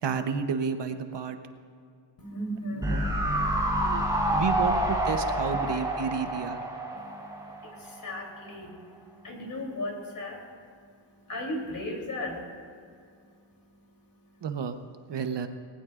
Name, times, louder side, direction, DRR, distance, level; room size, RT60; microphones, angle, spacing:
voice 1, 0.0-1.4 2.8-3.0 3.8-4.0 4.3-6.6 14.4-14.8 15.1-15.5, right 6 dB, 65° right, 8 dB, 1.0 m, -31 dB
voice 2, 2.2-4.7 5.6-5.7 6.9-14.7 15.1-15.4, left 1 dB, 45° left, 0 dB, 3.3 m, -38 dB
sound 1, 2.8-8.1 8.3-8.4, right 1 dB, 10° right, 2.5 m, -28 dB
19.5 x 19.0 x 2.5 m, 2.3 s
wide cardioid pair, 120°, 46 cm